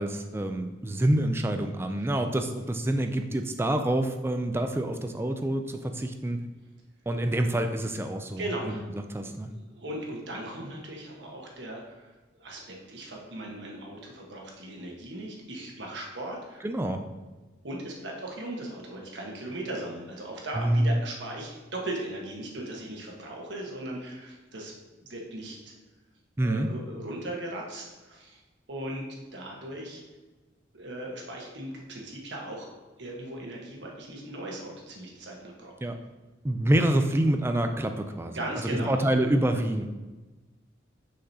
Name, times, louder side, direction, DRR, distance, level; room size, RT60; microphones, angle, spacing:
voice 1, 0.0-6.4 7.1-9.5 16.6-17.0 20.6-21.0 26.4-26.7 35.8-36.0 36.4-38.4 38.6-39.9, right 1 dB, 15° right, 6 dB, 0.3 m, -27 dB
voice 2, 8.4-8.8 9.5-12.1 12.4-16.6 17.6-24.7 25.0-25.7 26.4-28.4 28.7-29.0 29.3-30.0 30.7-32.7 33.0-35.7 38.3-39.0, right 1 dB, 70° right, -1 dB, 1.4 m, -38 dB
6.4 x 5.9 x 2.8 m, 1.2 s
head